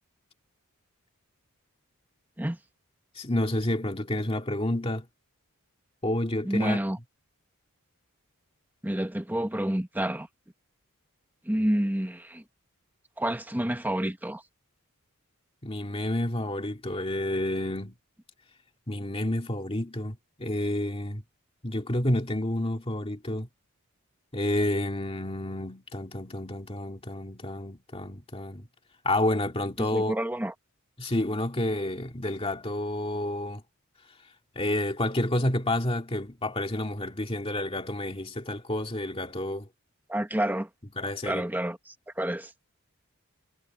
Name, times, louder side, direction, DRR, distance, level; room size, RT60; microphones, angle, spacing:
voice 1, 3.2-5.1 6.0-6.8 15.6-18.0 18.9-21.2 21.6-23.5 24.3-28.7 29.0-30.1 31.0-33.6 34.6-39.7 41.0-41.5, left 1 dB, 25° left, 2.3 m, -29 dB
voice 2, 6.4-7.0 8.8-10.3 11.4-12.4 13.2-14.4 29.8-30.5 40.1-40.7 41.2-42.5, right 1 dB, 10° right, 1.1 m, -29 dB
head